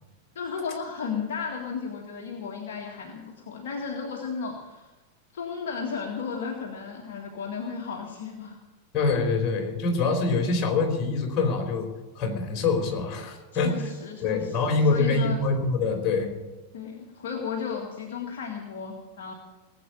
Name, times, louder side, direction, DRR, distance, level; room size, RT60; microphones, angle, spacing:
voice 1, 0.4-4.9 5.3-8.6 13.5-15.4 16.7-19.3, left 6 dB, 55° left, 0 dB, 1.9 m, -34 dB
voice 2, 8.9-11.9 12.1-13.9 14.2-16.4, left 3 dB, 35° left, 2 dB, 4.5 m, -25 dB
19.0 x 8.2 x 8.7 m, 1.2 s
figure-of-eight pair, 90°, 0 cm